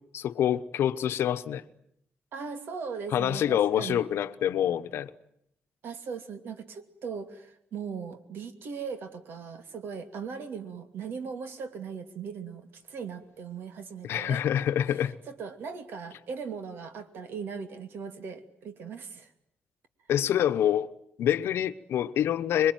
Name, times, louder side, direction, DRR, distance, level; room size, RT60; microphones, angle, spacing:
voice 1, 0.1-1.6 3.1-5.1 14.0-15.1 20.1-20.9 21.2-22.7, left 10 dB, 75° left, 1.0 m, -26 dB
voice 2, 2.3-4.0 5.8-14.4 15.3-19.3, right 6 dB, 60° right, 2.6 m, -39 dB
26.5 x 22.5 x 9.3 m
wide cardioid pair, 170°, 4 cm